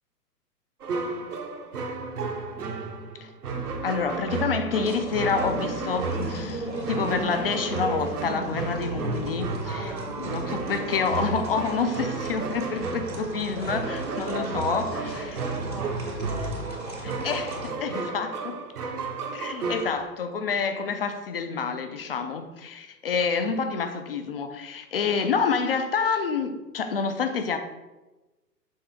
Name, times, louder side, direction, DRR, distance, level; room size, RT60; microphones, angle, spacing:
sound 1, 0.8-20.1, right 4 dB, 65° right, 0.9 m, -33 dB
voice 1, 3.8-9.6 10.2-14.9 17.0-18.6 19.3-27.6, left 5 dB, 35° left, 0.5 m, -28 dB
sound 2, 4.8-17.7, right 2 dB, 85° right, 1.9 m, -36 dB
voice 2, 9.7-10.7 14.1-16.9, right 2 dB, 20° right, 0.5 m, -39 dB
6.3 x 3.3 x 4.5 m
figure-of-eight pair, 120°, 50 cm